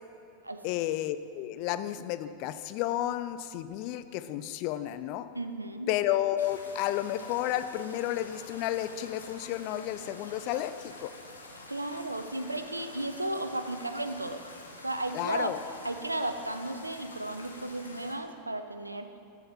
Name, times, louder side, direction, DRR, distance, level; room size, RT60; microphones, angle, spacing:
voice 1, 0.6-5.3 5.9-11.1 15.1-15.6, left 13 dB, 45° left, 12 dB, 0.3 m, -32 dB
voice 2, 5.3-5.9 11.7-14.4 14.8-15.5 15.8-19.1, right 2 dB, 85° right, 8 dB, 0.4 m, -34 dB
sound 1, 6.4-18.1, left 2 dB, 75° left, 0.8 m, -48 dB
7.9 x 4.6 x 5.5 m, 2.5 s
figure-of-eight pair, 90°, 0 cm